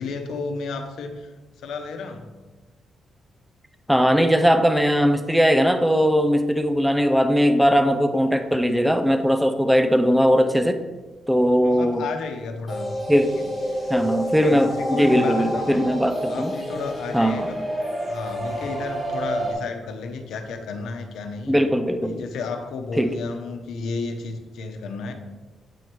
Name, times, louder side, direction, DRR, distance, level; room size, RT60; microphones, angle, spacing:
voice 1, 0.0-1.3 1.6-2.3 11.6-13.0 13.3-13.4 14.4-15.9 16.3-17.6 18.0-21.6 22.0-25.1, left 4 dB, 85° left, 6 dB, 0.9 m, -32 dB
voice 2, 3.9-10.8 11.3-12.0 13.1-13.3 13.9-16.5 17.1-17.5 21.5-22.3 23.0-23.1, equal, ahead, 7 dB, 0.5 m, -19 dB
sound 1, 12.7-19.5, equal, 15° right, 1.8 m, -29 dB
8.7 x 4.7 x 4.6 m, 1.2 s
cardioid pair, 145°, 0 cm